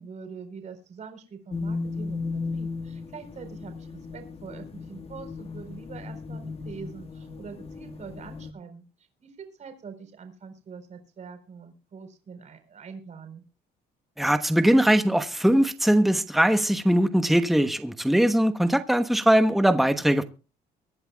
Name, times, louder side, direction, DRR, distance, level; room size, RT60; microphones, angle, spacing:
voice 1, 0.0-2.2 2.5-8.8 9.2-13.4, right 5 dB, 45° right, 4.2 m, -44 dB
sound 1, 1.5-8.5, left 4 dB, 35° left, 1.6 m, -36 dB
voice 2, 14.2-20.2, right 1 dB, ahead, 1.1 m, -21 dB
23.5 x 11.0 x 2.3 m
cardioid pair, 110°, 17 cm